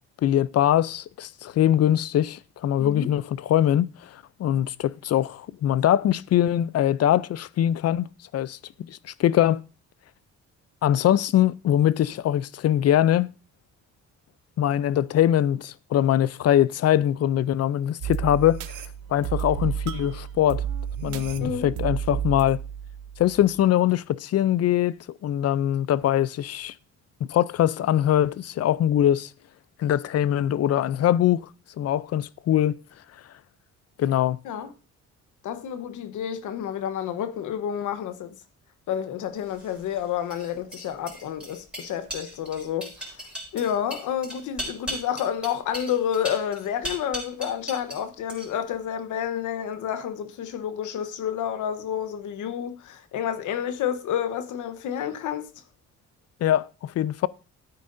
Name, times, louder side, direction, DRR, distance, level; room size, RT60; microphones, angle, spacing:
voice 1, 0.2-8.6 8.9-9.6 10.8-13.3 14.6-18.8 19.1-20.6 21.0-22.6 23.2-25.0 25.2-26.7 27.3-29.3 29.8-31.4 31.8-32.8 34.0-34.4 56.4-57.3, left 11 dB, 55° left, 0.5 m, -22 dB
voice 2, 2.8-3.1 21.4-21.7 34.4-34.7 35.4-38.4 38.9-43.2 43.5-55.5, left 9 dB, 80° left, 1.1 m, -29 dB
sound 1, 18.0-23.6, right 9 dB, 85° right, 0.8 m, -32 dB
sound 2, 39.5-48.0 48.3-48.8, equal, 5° right, 5.4 m, -37 dB
13.0 x 9.1 x 2.6 m
cardioid pair, 90°, 30 cm